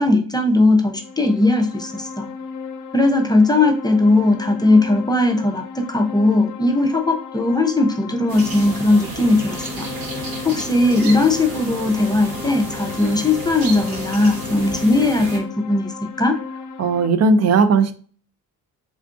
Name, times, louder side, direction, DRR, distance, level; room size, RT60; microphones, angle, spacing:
voice 1, 0.0-2.3 2.9-5.6 5.9-9.8 10.4-15.9 16.2-16.3, left 2 dB, 10° left, 4 dB, 0.5 m, -18 dB
sound 1, 0.8-17.1, left 6 dB, 60° left, 0.5 m, -35 dB
sound 2, 8.3-15.4, right 2 dB, 80° right, 1.1 m, -32 dB
voice 2, 16.8-17.9, right 4 dB, 45° right, 11 dB, 0.5 m, -16 dB
3.7 x 2.3 x 2.4 m, 0.43 s
cardioid pair, 85°, 36 cm